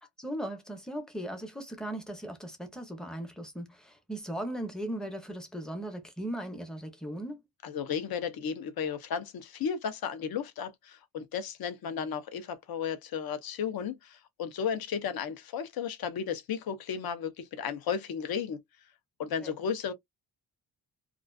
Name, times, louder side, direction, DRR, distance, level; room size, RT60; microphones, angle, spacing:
voice 1, 0.2-7.4 19.4-19.5, right 1 dB, ahead, 0.5 m, -38 dB
voice 2, 7.6-18.6 19.2-19.9, left 7 dB, 70° left, 0.6 m, -34 dB
2.4 x 2.3 x 2.2 m
wide cardioid pair, 155°, 38 cm